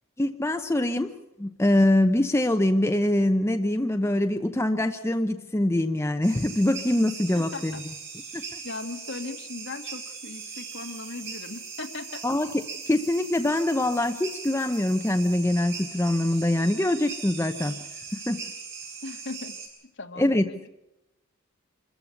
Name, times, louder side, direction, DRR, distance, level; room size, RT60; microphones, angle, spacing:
voice 1, 0.2-1.1 1.4-7.8 8.3-8.4 12.2-12.5 12.9-17.7 18.3-18.4 20.2-20.5, left 1 dB, 10° left, 6 dB, 0.7 m, -24 dB
sound 1, 6.2-19.7, right 5 dB, 55° right, 7.8 m, -40 dB
voice 2, 7.3-7.8 8.6-12.3 19.0-19.6 20.0-20.7, left 3 dB, 60° left, 5 dB, 1.8 m, -38 dB
25.5 x 14.5 x 8.3 m, 0.92 s
head